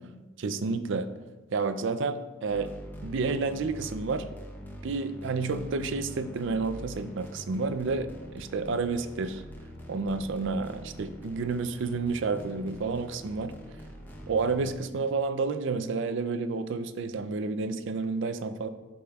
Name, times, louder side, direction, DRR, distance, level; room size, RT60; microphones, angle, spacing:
voice 1, 0.4-1.1 1.5-2.7 3.0-4.2 4.8-9.4 9.9-13.5 14.3-18.7, right 4 dB, 65° right, 11 dB, 0.4 m, -30 dB
sound 1, 2.5-14.7, equal, 10° left, 0.7 m, -44 dB
11.5 x 5.0 x 2.3 m, 1.2 s
head